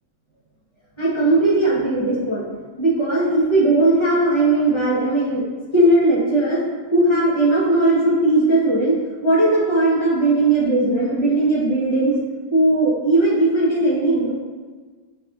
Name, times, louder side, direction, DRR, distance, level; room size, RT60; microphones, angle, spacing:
voice 1, 1.0-2.4 2.8-5.4 5.7-6.6 6.9-8.9 9.2-12.1 12.5-14.3, right 2 dB, 25° left, -7 dB, 0.8 m, -18 dB
5.4 x 3.6 x 2.4 m, 1.4 s
omnidirectional pair, 1.6 m